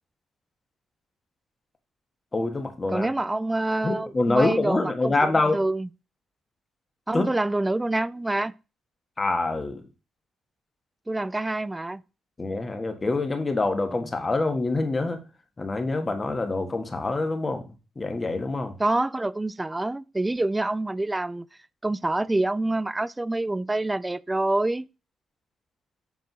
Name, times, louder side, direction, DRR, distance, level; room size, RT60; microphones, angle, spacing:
voice 1, 2.3-3.1 3.8-5.6 7.1-7.3 9.2-9.8 12.4-15.2 15.6-17.6 17.9-18.7, left 2 dB, 25° left, 1.6 m, -25 dB
voice 2, 2.9-5.9 7.1-8.5 11.1-12.0 18.8-21.5 21.8-24.9, right 2 dB, 15° right, 0.3 m, -26 dB
8.3 x 3.6 x 6.1 m
cardioid pair, 90°, 0 cm